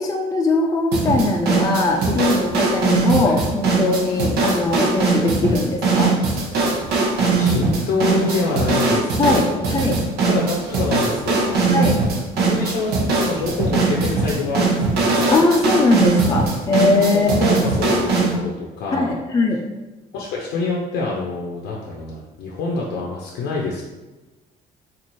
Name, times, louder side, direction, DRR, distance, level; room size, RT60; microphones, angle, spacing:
voice 1, 0.0-6.1 9.2-9.9 11.7-11.9 15.3-17.6 18.9-19.6, left 2 dB, 20° left, 0 dB, 0.4 m, -20 dB
sound 1, 0.9-18.4, right 3 dB, 70° right, 0.8 m, -20 dB
voice 2, 6.7-9.8 10.3-12.1 12.4-15.1 17.2-19.2 20.1-23.8, left 3 dB, 85° left, -3 dB, 0.6 m, -26 dB
4.4 x 2.5 x 3.0 m, 1.1 s
cardioid pair, 110°, 17 cm